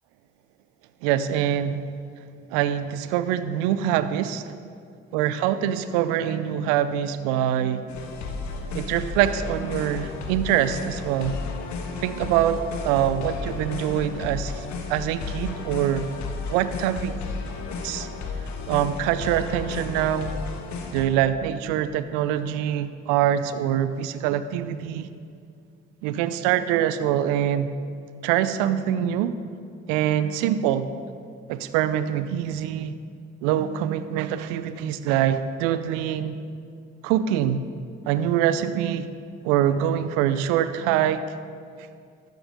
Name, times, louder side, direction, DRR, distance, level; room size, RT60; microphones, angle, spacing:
voice 1, 1.0-1.8 2.5-4.6 5.1-7.9 8.7-11.4 12.0-16.1 16.5-17.1 17.8-18.1 18.7-20.3 20.9-25.1 26.0-27.7 28.2-29.3 29.9-30.9 31.5-32.9 33.4-36.3 37.0-37.6 38.0-39.1 39.4-41.2, right 10 dB, 75° right, 13 dB, 0.6 m, -24 dB
sound 1, 7.9-21.0, left 4 dB, 60° left, 1.3 m, -33 dB
12.5 x 9.1 x 3.6 m, 2.3 s
hypercardioid pair, 45°, 32 cm